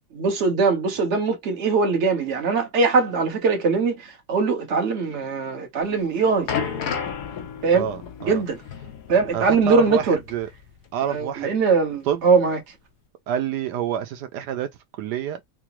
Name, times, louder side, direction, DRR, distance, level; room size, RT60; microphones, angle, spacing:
voice 1, 0.1-6.5 7.6-7.9 8.2-8.6 9.1-10.2 11.1-12.6, right 4 dB, 45° right, 1.3 m, -21 dB
sound 1, 5.9-10.8 11.0-11.2 11.9-12.0, left 7 dB, 75° left, 1.3 m, -33 dB
voice 2, 7.7-8.4 9.3-10.5 10.9-11.5 12.1-12.2 13.3-14.7 15.0-15.4, right 9 dB, 85° right, 1.2 m, -28 dB
4.9 x 2.1 x 3.0 m
omnidirectional pair, 1.8 m